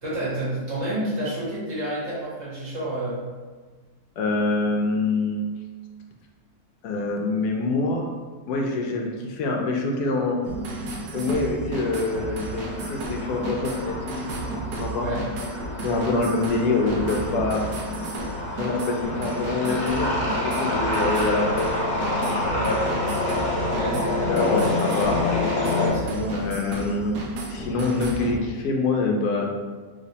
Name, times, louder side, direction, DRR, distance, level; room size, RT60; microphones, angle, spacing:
voice 1, 0.0-3.2 14.9-15.2 22.5-22.7 23.7-24.0 25.8-26.4, right 1 dB, 50° right, -9 dB, 1.5 m, -29 dB
voice 2, 4.2-5.5 6.8-8.1 8.5-10.4 11.1-14.1 14.7-15.1 15.8-17.6 18.6-23.2 24.2-25.2 26.3-27.2 27.5-29.5, left 3 dB, 80° left, 1 dB, 1.1 m, -25 dB
sound 1, 10.4-28.4, right 2 dB, 85° right, 1.2 m, -33 dB
sound 2, 11.7-25.9, left 2 dB, 60° left, 1.4 m, -28 dB
3.2 x 3.1 x 2.7 m, 1.4 s
omnidirectional pair, 1.6 m